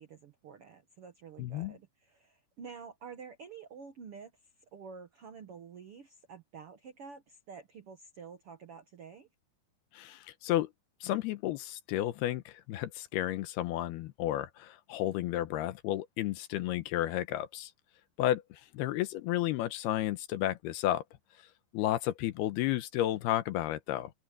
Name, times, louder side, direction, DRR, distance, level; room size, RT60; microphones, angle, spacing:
voice 1, 0.0-4.3 4.7-9.3, right 6 dB, 80° right, 1.2 m, -49 dB
voice 2, 1.4-1.7 9.9-10.7 11.0-17.7 18.2-21.0 21.7-24.1, left 14 dB, 80° left, 2.8 m, -32 dB
omnidirectional pair, 4.7 m